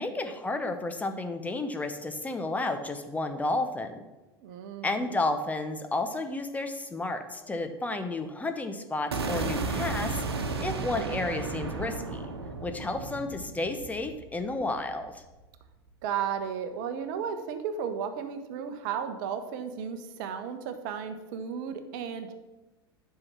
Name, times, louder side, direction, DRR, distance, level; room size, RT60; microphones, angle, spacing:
voice 1, 0.0-4.0 4.8-12.3 12.6-15.2, left 2 dB, 10° left, 6 dB, 0.9 m, -32 dB
voice 2, 4.4-5.1 16.0-22.3, right 7 dB, 50° right, 9 dB, 1.0 m, -34 dB
sound 1, 9.1-15.1, right 3 dB, 70° right, 1.2 m, -34 dB
10.5 x 5.8 x 5.9 m, 1.1 s
figure-of-eight pair, 80°, 14 cm